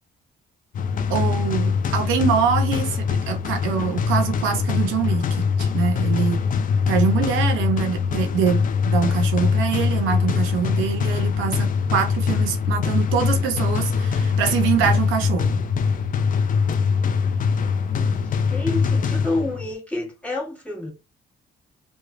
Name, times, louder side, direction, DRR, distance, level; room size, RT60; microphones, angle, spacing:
sound 1, 0.7-19.7, left 6 dB, 45° left, 0.4 m, -22 dB
voice 1, 1.1-6.4 6.9-15.6, right 7 dB, 90° right, 0.6 m, -24 dB
voice 2, 18.5-20.9, left 2 dB, 5° left, 1.3 m, -28 dB
3.0 x 2.2 x 2.4 m
cardioid pair, 90°, 20 cm